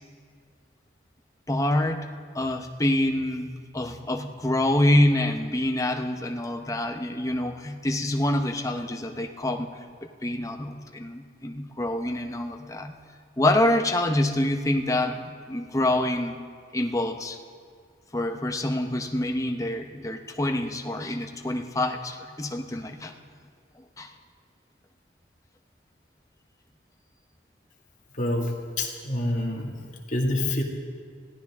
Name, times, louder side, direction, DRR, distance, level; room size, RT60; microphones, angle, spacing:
voice 1, 1.5-2.1 2.3-9.7 10.0-12.9 13.4-16.4 16.7-17.4 18.1-23.2 24.0-24.1, left 1 dB, 20° left, 4 dB, 0.9 m, -26 dB
voice 2, 28.2-30.6, left 1 dB, 45° left, -1 dB, 2.1 m, -27 dB
24.5 x 16.0 x 3.6 m, 2.1 s
head